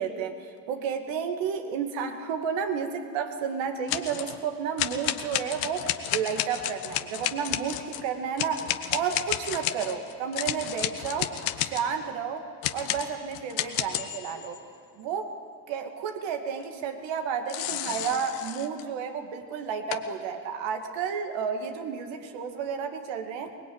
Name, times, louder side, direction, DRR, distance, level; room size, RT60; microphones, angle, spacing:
voice 1, 0.0-11.3 11.6-14.6 15.0-15.3 15.7-23.5, right 6 dB, 65° right, 6 dB, 2.4 m, -31 dB
sound 1, 3.9-4.4 4.8-8.0 8.4-11.9 12.6-14.6 17.5-18.8 19.9-20.0, left 13 dB, 75° left, 1.4 m, -31 dB
24.0 x 20.5 x 9.0 m, 2.5 s
hypercardioid pair, 60°, 48 cm